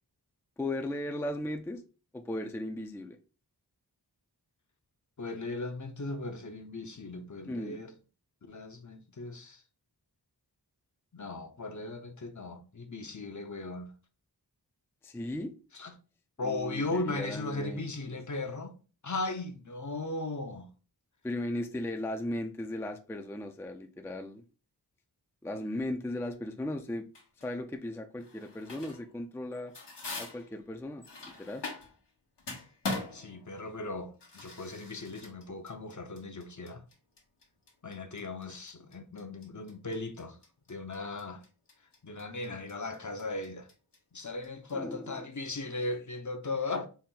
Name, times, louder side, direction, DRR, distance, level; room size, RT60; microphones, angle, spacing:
voice 1, 0.6-1.8 2.1-3.2 7.5-7.8 15.0-15.5 16.4-18.2 21.2-24.4 25.4-27.1 27.4-29.7 30.2-31.6 44.7-45.1, left 1 dB, 5° left, 0.4 m, -37 dB
voice 2, 5.2-7.9 8.5-9.6 11.1-13.9 15.7-15.9 16.4-18.7 19.0-20.7 33.1-36.8 37.8-40.4 40.7-41.4 42.0-43.7 44.1-46.9, left 2 dB, 45° left, 0.7 m, -37 dB
sound 1, 27.2-27.5 28.2-29.1 29.4-32.1 32.4-44.7, left 3 dB, 80° left, 1.1 m, -42 dB
4.2 x 2.1 x 3.7 m
wide cardioid pair, 40°, 41 cm